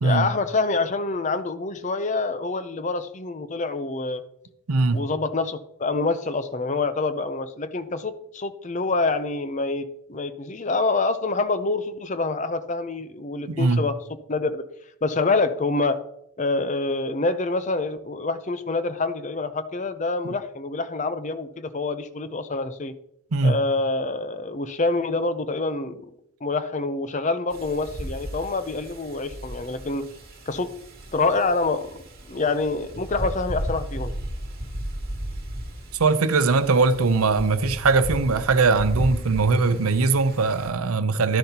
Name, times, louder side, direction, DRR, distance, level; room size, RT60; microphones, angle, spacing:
voice 1, 0.0-4.2 4.9-14.0 14.3-14.6 15.0-16.0 16.4-22.9 23.4-26.0 26.4-30.1 30.5-30.7 31.1-31.9 32.3-34.2, left 3 dB, 35° left, 0.6 m, -26 dB
voice 2, 4.7-5.0 13.5-13.8 20.2-20.3 23.3-23.6 36.0-41.4, right 3 dB, 85° right, 0.7 m, -20 dB
Wind, 27.5-40.7, equal, 45° right, 2.2 m, -35 dB
11.5 x 10.5 x 2.9 m
head